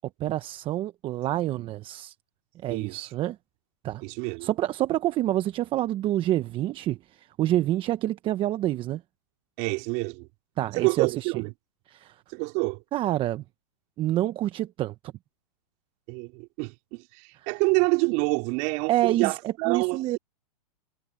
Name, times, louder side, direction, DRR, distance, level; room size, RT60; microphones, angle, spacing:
voice 1, 0.2-2.1 2.6-3.4 3.8-4.0 4.4-9.0 10.6-11.3 11.9-12.2 12.9-13.4 14.0-14.9 17.4-17.5 18.9-20.2, right 14 dB, 25° right, 0.8 m, -27 dB
voice 2, 4.0-4.5 9.6-10.3 10.8-11.5 12.3-12.8 16.1-20.2, right 30 dB, 45° right, 4.1 m, -27 dB
hypercardioid pair, 130°, 20 cm